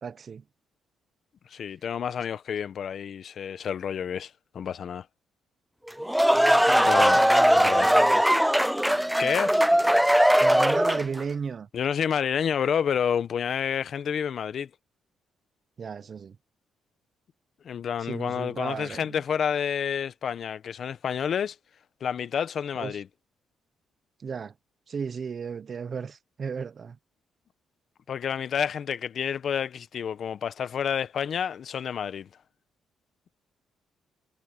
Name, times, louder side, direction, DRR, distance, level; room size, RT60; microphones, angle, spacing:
voice 1, 0.0-0.4 6.3-8.2 10.4-11.7 15.8-16.4 18.1-19.2 22.8-23.0 24.2-24.5 24.9-27.0, right 6 dB, 45° right, 1.1 m, -35 dB
voice 2, 1.5-5.0 6.8-7.2 7.6-7.9 9.2-9.5 11.7-14.7 17.6-21.6 22.0-23.1 28.1-32.3, left 8 dB, 60° left, 1.1 m, -29 dB
sound 1, 5.9-11.2, equal, 5° right, 0.4 m, -20 dB
cardioid pair, 90°, 0 cm